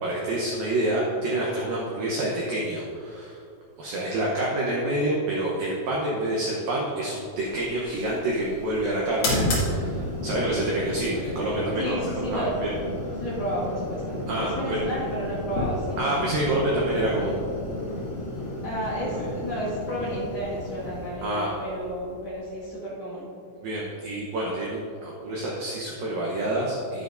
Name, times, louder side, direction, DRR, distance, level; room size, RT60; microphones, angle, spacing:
voice 1, 0.0-3.4 3.8-12.7 13.0-13.2 14.3-14.8 16.0-17.4 19.0-19.3 21.2-21.5 23.6-27.0, right 1 dB, 85° right, -4 dB, 2.0 m, -27 dB
sound 1, 7.4-22.7, left 1 dB, 50° left, 1.9 m, -32 dB
voice 2, 11.8-12.5 13.2-16.0 18.6-23.3, equal, 65° left, -8 dB, 1.5 m, -32 dB
10.5 x 10.5 x 2.6 m, 2.5 s
omnidirectional pair, 5.7 m